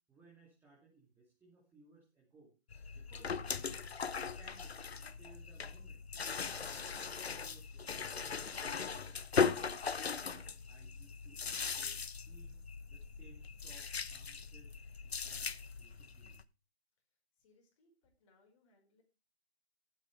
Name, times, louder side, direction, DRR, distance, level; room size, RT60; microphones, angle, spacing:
voice 1, 0.1-2.5 2.9-3.8 4.4-4.8 5.2-6.0 6.4-9.2 9.6-14.7 15.0-16.4, right 3 dB, 5° right, -4 dB, 2.6 m, -63 dB
sound 1, 2.7-16.4, left 5 dB, 70° left, 1.0 m, -39 dB
voice 2, 17.4-19.0, left 3 dB, 30° left, 2 dB, 4.9 m, -71 dB
16.0 x 9.2 x 3.3 m, 0.30 s
figure-of-eight pair, 145°, 33 cm